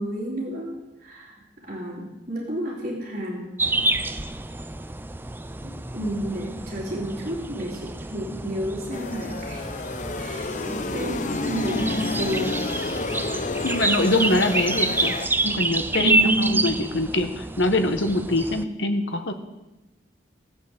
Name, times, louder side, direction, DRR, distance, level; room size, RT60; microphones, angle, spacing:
voice 1, 0.0-3.5 3.8-4.1 5.6-9.6 10.2-12.6 16.0-16.6, right 1 dB, 40° right, -7 dB, 3.2 m, -30 dB
sound 1, 3.6-18.6, right 2 dB, 10° right, 0.5 m, -28 dB
sound 2, 8.9-15.3, left 3 dB, 45° left, 0.7 m, -30 dB
voice 2, 13.6-15.1 15.4-19.3, left 2 dB, 85° left, 7 dB, 1.5 m, -24 dB
15.5 x 8.1 x 8.1 m, 1.0 s
head